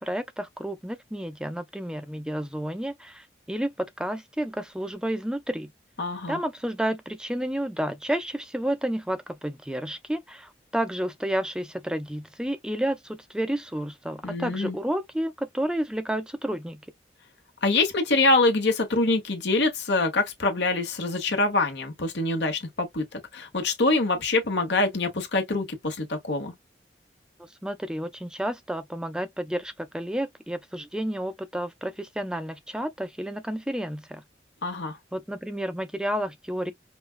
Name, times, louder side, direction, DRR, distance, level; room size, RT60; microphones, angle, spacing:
voice 1, 0.0-5.7 6.3-16.9 27.6-34.2 35.1-36.7, right 1 dB, 5° right, 0.5 m, -31 dB
voice 2, 6.0-6.4 14.2-14.8 17.6-26.5 34.6-35.0, left 2 dB, 75° left, 1.2 m, -25 dB
5.1 x 2.3 x 2.4 m
head